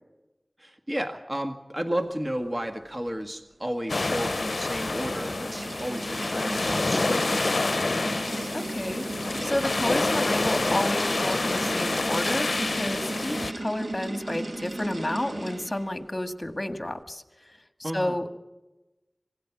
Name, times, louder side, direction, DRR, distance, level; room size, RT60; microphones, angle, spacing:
voice 1, 0.6-7.9 17.8-18.2, equal, 25° right, 5 dB, 1.8 m, -33 dB
sound 1, 3.8-16.0, right 2 dB, 75° right, 1.5 m, -36 dB
sound 2, 3.9-13.5, left 3 dB, 80° left, 0.6 m, -28 dB
voice 2, 8.5-9.0 9.4-17.2 17.8-18.4, left 1 dB, 25° left, 6 dB, 1.9 m, -30 dB
26.0 x 18.5 x 6.1 m, 1.0 s
wide cardioid pair, 60°, 0 cm